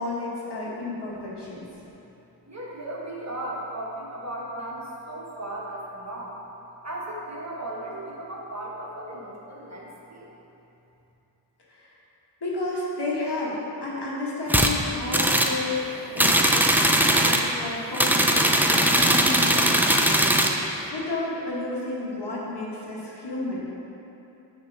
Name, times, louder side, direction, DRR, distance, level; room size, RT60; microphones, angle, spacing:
voice 1, 0.0-1.7 11.7-11.9 12.4-16.5 16.8-23.7, left 2 dB, 70° left, -6 dB, 1.3 m, -32 dB
voice 2, 2.4-6.4 6.8-10.3, right 1 dB, 40° right, -4 dB, 1.1 m, -36 dB
sound 1, 14.5-14.7 15.1-15.6 16.2-17.5 17.9-20.6, right 1 dB, 5° right, 0.3 m, -20 dB
6.5 x 2.9 x 5.2 m, 2.9 s
cardioid pair, 40°, 42 cm